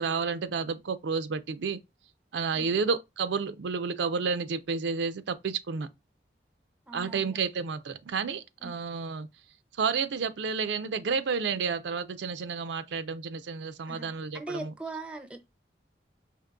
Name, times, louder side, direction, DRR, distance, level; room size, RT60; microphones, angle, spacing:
voice 1, 0.0-1.8 2.3-5.9 6.9-9.3 9.8-14.7, right 5 dB, 85° right, 0.4 m, -31 dB
voice 2, 6.9-7.4 8.6-8.8 13.9-15.4, right 2 dB, 5° right, 0.4 m, -41 dB
5.1 x 2.8 x 2.3 m
head